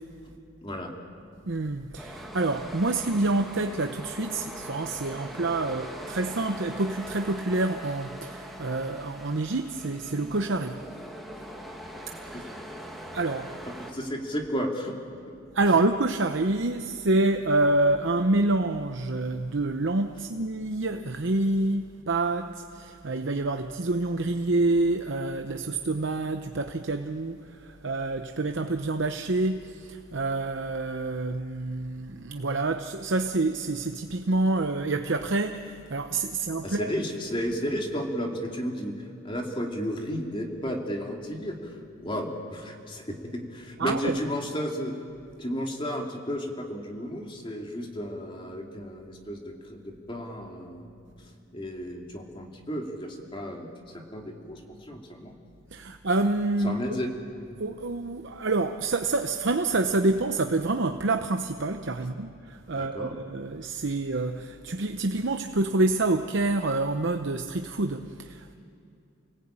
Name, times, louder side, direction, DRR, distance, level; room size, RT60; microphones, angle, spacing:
voice 1, 0.6-1.0 12.3-12.4 13.9-14.9 36.6-45.0 45.4-50.9 51.5-55.3 56.6-57.1 62.7-63.2, equal, 25° left, 2.7 m, -33 dB
voice 2, 1.5-10.8 12.1-12.5 13.1-13.5 15.5-36.9 43.8-44.2 55.7-57.0 57.6-68.5, right 2 dB, 60° right, 0.8 m, -27 dB
sound 1, 2.0-13.9, equal, ahead, 2.1 m, -41 dB
29.0 x 19.0 x 8.9 m
head